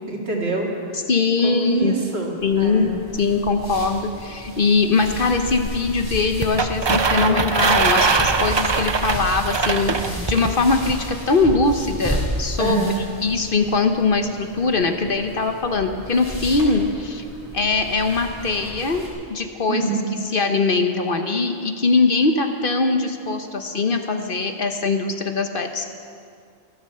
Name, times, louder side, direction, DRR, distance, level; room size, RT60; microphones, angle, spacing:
voice 1, 0.1-1.1 1.4-3.0 7.2-7.5 10.0-10.2 12.6-12.9 19.7-20.1, right 3 dB, 60° right, -1 dB, 2.4 m, -26 dB
voice 2, 1.1-1.9 2.4-12.8 13.2-17.2 17.5-19.0 19.3-19.9 20.3-25.9, left 4 dB, 50° left, 6 dB, 1.1 m, -21 dB
sound 1, 2.4-19.1, equal, 15° left, 3.3 m, -33 dB
sound 2, 6.4-10.5, right 4 dB, 35° right, 0.4 m, -21 dB
15.0 x 13.0 x 6.7 m, 2.3 s
omnidirectional pair, 1.2 m